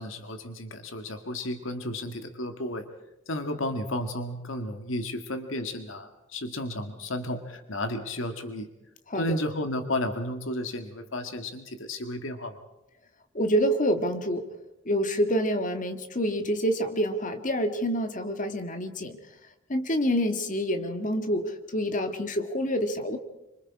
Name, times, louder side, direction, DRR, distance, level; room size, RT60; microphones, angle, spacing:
voice 1, 0.0-2.9 3.3-8.7 9.2-12.6, left 1 dB, 80° left, 7 dB, 2.0 m, -33 dB
voice 2, 13.3-14.5 14.9-19.2 19.7-23.2, equal, 40° left, 7 dB, 1.9 m, -27 dB
26.5 x 25.0 x 4.9 m, 0.93 s
head